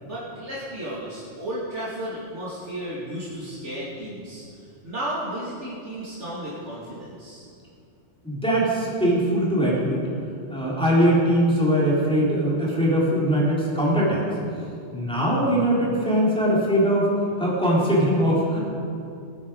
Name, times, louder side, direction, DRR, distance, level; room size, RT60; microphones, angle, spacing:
voice 1, 0.0-4.4 4.8-7.5, right 1 dB, 75° right, -8 dB, 3.0 m, -33 dB
voice 2, 8.2-10.0 10.5-14.2 14.9-17.1 17.4-18.6, equal, 5° left, -7 dB, 4.0 m, -21 dB
21.0 x 9.4 x 4.9 m, 2.5 s
omnidirectional pair, 1.2 m